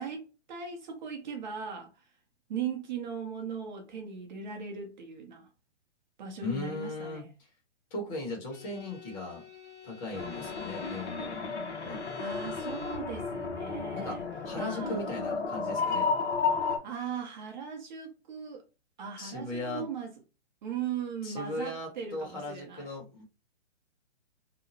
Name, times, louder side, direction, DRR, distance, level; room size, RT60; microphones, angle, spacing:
voice 1, 0.0-1.9 2.5-5.5 6.2-7.3 12.2-14.2 14.6-15.1 16.5-18.7 19.0-20.1 20.6-22.9, right 6 dB, 40° right, 0.5 m, -38 dB
voice 2, 6.4-7.5 7.9-9.4 9.8-11.6 11.8-12.0 14.0-14.2 14.4-16.1 19.2-19.8 21.2-23.2, left 2 dB, 25° left, 1.2 m, -38 dB
Bowed string instrument, 8.5-13.2, left 8 dB, 90° left, 1.2 m, -48 dB
sound 1, 10.1-16.8, left 4 dB, 65° left, 0.9 m, -33 dB
2.8 x 2.0 x 2.7 m
hypercardioid pair, 135°, 36 cm